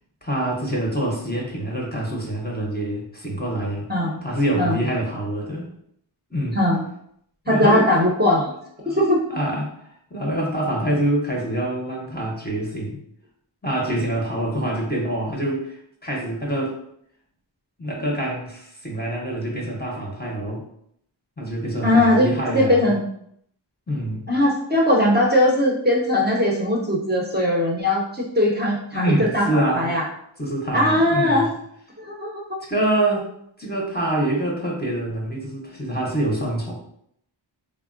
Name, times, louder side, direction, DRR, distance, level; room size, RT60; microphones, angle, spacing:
voice 1, 0.2-3.9 4.2-5.7 6.3-6.6 7.4-7.8 8.8-9.0 9.3-13.0 13.6-16.8 17.8-20.6 21.4-22.8 23.9-24.3 28.9-29.9 30.4-31.5 32.7-33.3 33.6-36.7, right 1 dB, 20° left, -2 dB, 0.6 m, -25 dB
voice 2, 3.9-4.2 4.6-4.8 6.5-6.8 7.5-8.5 8.9-9.2 21.8-23.0 24.3-30.1 30.7-31.5 32.0-32.6, left 1 dB, 20° right, -4 dB, 0.6 m, -20 dB
3.4 x 2.1 x 2.4 m, 0.70 s
wide cardioid pair, 60°, 47 cm